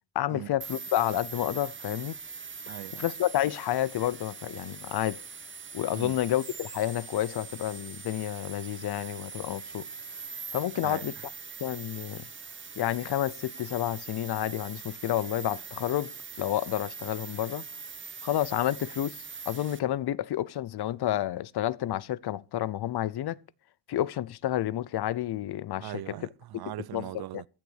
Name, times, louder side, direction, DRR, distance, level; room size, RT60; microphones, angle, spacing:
voice 1, 0.1-2.2 3.0-5.2 5.7-9.9 10.5-11.1 11.6-12.3 12.8-16.1 16.4-17.6 18.2-19.2 19.5-23.4 23.9-26.1 26.9-27.4, left 13 dB, 65° left, 0.8 m, -30 dB
sound 1, 0.6-19.8, right 5 dB, 25° right, 1.2 m, -42 dB
voice 2, 2.7-3.1 5.9-6.1 10.8-11.2 25.8-27.5, right 14 dB, 60° right, 0.6 m, -40 dB
15.0 x 7.1 x 8.0 m
cardioid pair, 75°, 43 cm